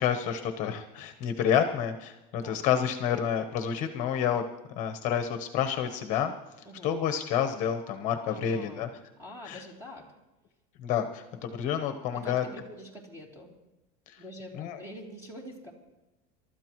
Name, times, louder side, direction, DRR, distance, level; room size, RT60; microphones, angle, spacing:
voice 1, 0.0-4.4 4.8-6.3 6.8-8.9 9.5-9.6 10.8-12.4 14.1-14.2 14.6-14.8, left 8 dB, 40° left, 7 dB, 1.0 m, -29 dB
voice 2, 2.3-2.6 6.6-6.9 8.3-8.9 9.2-10.1 12.1-13.5 14.2-15.7, equal, 15° right, -1 dB, 2.9 m, -45 dB
28.0 x 13.0 x 3.1 m, 1.0 s
cardioid pair, 170°, 19 cm